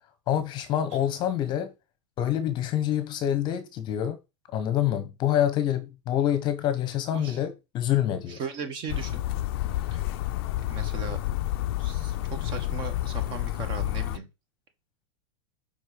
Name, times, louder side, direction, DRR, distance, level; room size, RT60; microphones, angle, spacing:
voice 1, 0.3-1.7 2.2-4.2 4.5-8.4, left 11 dB, 30° left, 1.0 m, -26 dB
sound 1, 0.9-1.8, right 5 dB, 65° right, 5.0 m, -53 dB
voice 2, 7.1-7.4 8.3-9.2 9.9-10.0 10.6-11.2 11.8-14.3, right 5 dB, 30° right, 1.3 m, -37 dB
sound 2, 8.9-14.2, left 14 dB, 50° left, 0.5 m, -29 dB
5.3 x 4.6 x 5.1 m
supercardioid pair, 155°, 16 cm